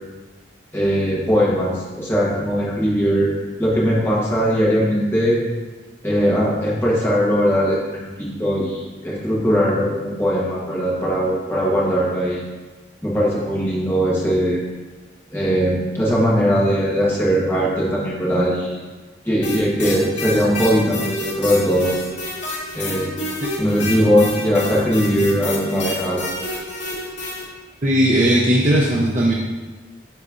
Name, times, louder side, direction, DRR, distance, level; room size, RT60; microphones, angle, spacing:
voice 1, 0.7-3.3 3.6-5.4 6.0-12.4 13.0-14.6 15.3-18.8 19.3-21.9 22.7-23.2 23.6-26.3, equal, 10° left, -6 dB, 1.2 m, -20 dB
sound 1, 19.4-27.4, left 2 dB, 90° left, 2.0 m, -28 dB
voice 2, 27.8-29.3, right 1 dB, 40° right, -4 dB, 0.6 m, -17 dB
10.0 x 4.1 x 2.5 m, 1.3 s
head